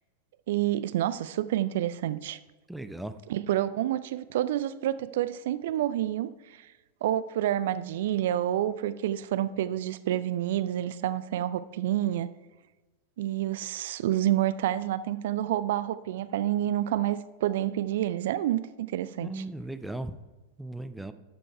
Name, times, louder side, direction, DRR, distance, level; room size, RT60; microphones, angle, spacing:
voice 1, 0.5-2.4 3.3-6.7 7.0-12.3 13.2-19.4, right 12 dB, 55° right, 15 dB, 0.4 m, -28 dB
voice 2, 2.7-3.1 19.2-20.1 20.6-21.1, right 2 dB, 5° right, 11 dB, 0.5 m, -37 dB
11.0 x 7.7 x 4.5 m, 1.2 s
figure-of-eight pair, 90°, 0 cm